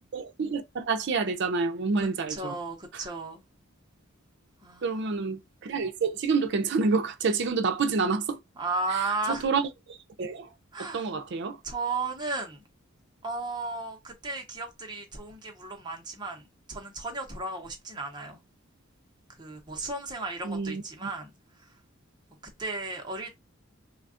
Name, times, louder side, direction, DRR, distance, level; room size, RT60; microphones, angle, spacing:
voice 1, 0.1-2.6 4.8-8.4 9.3-9.7 10.2-10.5 10.8-11.6 20.4-20.8, right 4 dB, 60° right, 0.5 m, -28 dB
voice 2, 2.0-3.4 4.6-5.1 8.6-9.4 10.7-11.1 11.6-12.6 13.2-16.4 16.7-18.4 19.4-21.3 22.6-23.4, right 3 dB, 20° right, 0.7 m, -34 dB
3.4 x 2.2 x 2.5 m
head